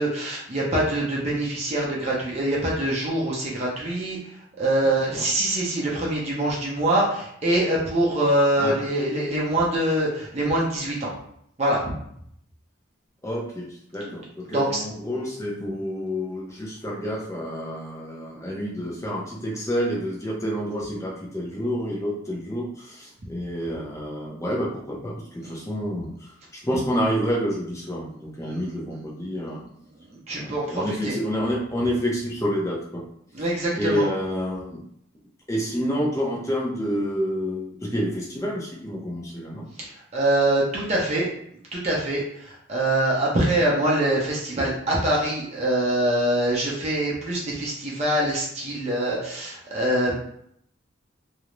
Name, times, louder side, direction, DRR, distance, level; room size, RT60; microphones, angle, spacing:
voice 1, 0.0-4.2 4.6-11.1 11.6-11.9 14.0-14.1 14.5-14.8 28.4-28.7 30.1-31.1 33.3-34.0 39.8-41.3 41.7-50.1, right 1 dB, 35° right, -4 dB, 0.6 m, -24 dB
voice 2, 4.8-5.3 8.6-8.8 13.2-29.6 30.3-33.0 33.8-34.8 35.5-39.7, equal, 15° left, -3 dB, 0.5 m, -28 dB
2.4 x 2.0 x 3.0 m, 0.70 s
head